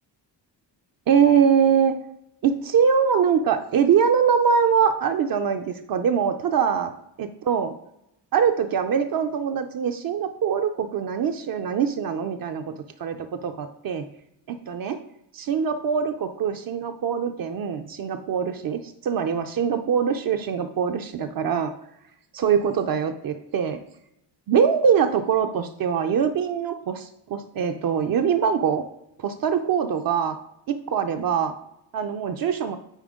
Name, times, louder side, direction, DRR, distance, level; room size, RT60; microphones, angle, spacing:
voice 1, 1.1-2.0 2.4-6.9 7.2-7.7 8.3-12.7 13.0-14.0 14.5-15.0 15.3-21.7 22.3-23.8 24.5-28.9 29.2-30.4 30.9-31.5 31.9-32.8, right 7 dB, 50° right, 6 dB, 0.5 m, -23 dB
9.0 x 4.2 x 3.6 m, 0.82 s
cardioid pair, 140°, 44 cm